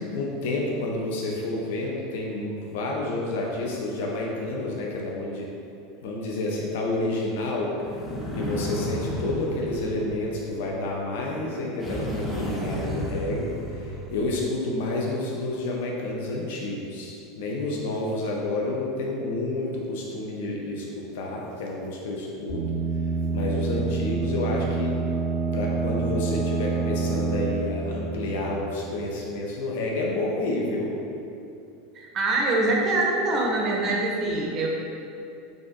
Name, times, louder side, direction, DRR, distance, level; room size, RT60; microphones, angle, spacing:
voice 1, 0.1-5.5 6.0-7.7 8.3-13.5 13.8-20.9 21.1-22.6 23.3-24.9 25.5-30.9, left 2 dB, 70° left, -2 dB, 0.3 m, -29 dB
sound 1, 7.8-10.9 11.8-14.5, equal, 15° left, 0.5 m, -33 dB
sound 2, 22.5-29.1, right 4 dB, 50° left, 0.8 m, -28 dB
voice 2, 31.9-34.7, right 2 dB, 40° right, -1 dB, 0.4 m, -24 dB
2.5 x 2.3 x 2.4 m, 2.6 s
hypercardioid pair, 85°, 0 cm